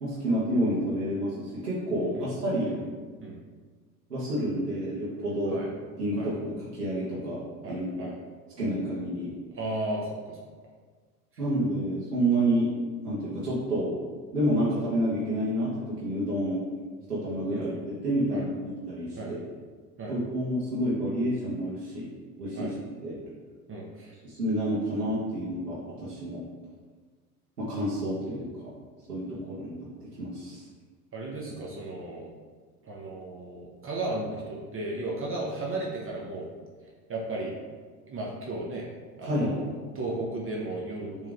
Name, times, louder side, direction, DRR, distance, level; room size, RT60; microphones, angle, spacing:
voice 1, 0.0-2.7 4.1-5.6 6.0-7.4 7.6-8.1 8.6-9.3 11.4-12.7 13.0-13.9 14.3-16.7 17.1-19.4 20.1-22.1 22.4-22.7 23.0-23.1 24.2-26.4 27.6-28.5 29.1-29.9 30.2-30.6 39.2-39.6, right 1 dB, 90° right, -9 dB, 1.6 m, -29 dB
voice 2, 7.6-8.2 9.5-10.4 17.5-17.7 18.3-18.5 19.2-19.3 20.0-20.2 22.5-22.7 23.7-24.1 31.1-32.3 32.8-36.5 37.1-37.5 38.1-38.9 39.2-41.3, right 2 dB, 30° right, -2 dB, 1.1 m, -35 dB
7.4 x 3.6 x 3.6 m, 1.5 s
hypercardioid pair, 80°, 46 cm